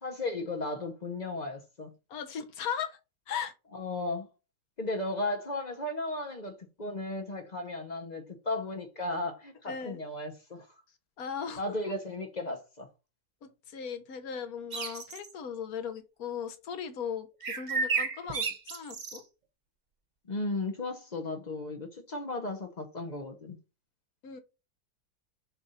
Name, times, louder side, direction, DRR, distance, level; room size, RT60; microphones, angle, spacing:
voice 1, 0.0-1.9 3.7-4.3 4.8-10.7 11.6-12.9 20.3-23.6, left 2 dB, 35° left, 0.8 m, -35 dB
voice 2, 2.1-3.0 3.3-3.5 9.7-10.0 11.2-11.6 13.4-19.2 24.2-24.4, left 7 dB, 65° left, 1.4 m, -37 dB
sound 1, 14.7-15.3 17.4-19.2, right 4 dB, 45° right, 0.5 m, -32 dB
6.9 x 2.5 x 5.6 m
omnidirectional pair, 1.7 m